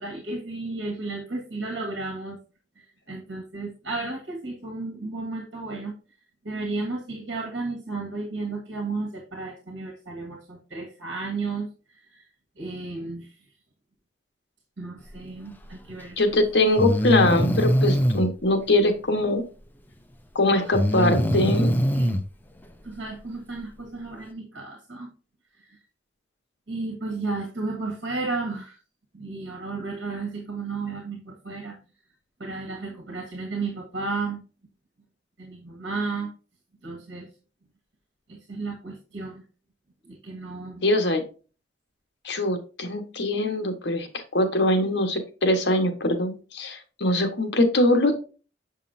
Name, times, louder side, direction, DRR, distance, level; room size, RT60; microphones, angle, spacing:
voice 1, 0.0-2.4 2.8-5.9 6.4-12.3 12.6-13.3 14.8-16.4 20.6-22.2 22.8-25.1 25.6-25.8 26.7-28.8 29.1-31.8 32.4-34.4 35.4-36.3 36.8-37.3 38.3-39.4 40.1-40.8, right 3 dB, 75° right, 1 dB, 1.7 m, -33 dB
Breathing, 15.9-16.0 16.8-18.3 20.7-22.2, equal, 10° left, 0.5 m, -22 dB
voice 2, 16.2-19.4 20.3-21.7 40.8-41.2 42.2-48.2, left 1 dB, 65° left, 6 dB, 1.3 m, -22 dB
7.2 x 5.5 x 2.6 m, 0.35 s
head